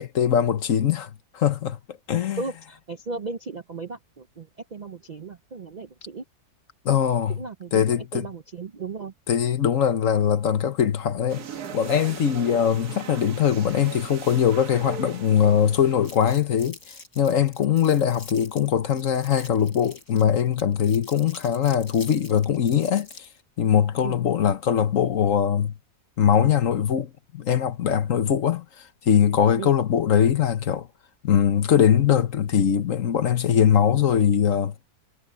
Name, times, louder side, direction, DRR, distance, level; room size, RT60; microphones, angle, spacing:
voice 1, 0.0-1.8 2.1-2.4 6.8-7.4 7.7-8.3 9.3-11.4 11.7-16.8 17.2-23.3 23.6-25.7 26.2-28.6 29.1-30.9 31.2-34.7, left 8 dB, 60° left, 1.3 m, -21 dB
voice 2, 2.4-6.2 7.3-9.1 24.0-24.2 29.6-29.7, right 4 dB, 50° right, 0.5 m, -36 dB
sound 1, 11.3-16.4, right 7 dB, 90° right, 1.9 m, -39 dB
Crumpling crinkling, 16.0-23.4, left 2 dB, 80° left, 6.2 m, -46 dB
omnidirectional pair, 1.6 m